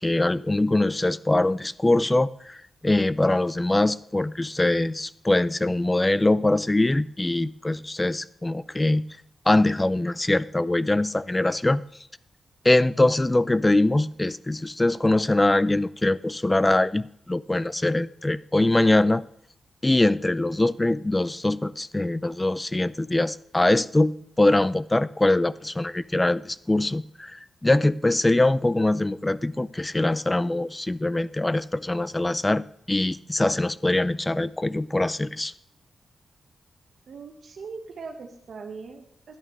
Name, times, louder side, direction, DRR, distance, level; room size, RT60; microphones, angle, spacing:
voice 1, 0.0-9.1 9.5-11.8 12.6-19.2 19.8-35.5, left 2 dB, 15° left, 0.4 m, -23 dB
voice 2, 37.1-39.4, right 4 dB, 70° right, 1.2 m, -40 dB
12.5 x 11.0 x 3.2 m
wide cardioid pair, 120°, 0 cm